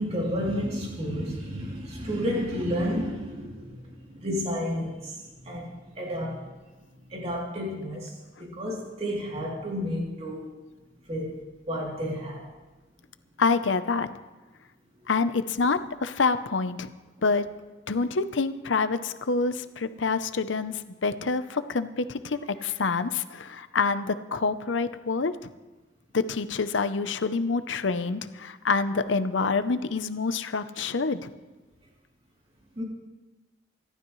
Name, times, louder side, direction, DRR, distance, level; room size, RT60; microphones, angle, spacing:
voice 1, 0.0-6.4 7.1-8.1 8.4-10.5 11.1-11.4 11.7-12.4 32.8-32.9, equal, 35° right, -3 dB, 3.1 m, -31 dB
voice 2, 13.4-14.1 15.1-16.9 17.2-17.5 17.9-20.7 21.0-25.3 26.1-31.3, left 4 dB, 85° left, 11 dB, 0.8 m, -27 dB
26.0 x 12.5 x 3.2 m, 1.2 s
head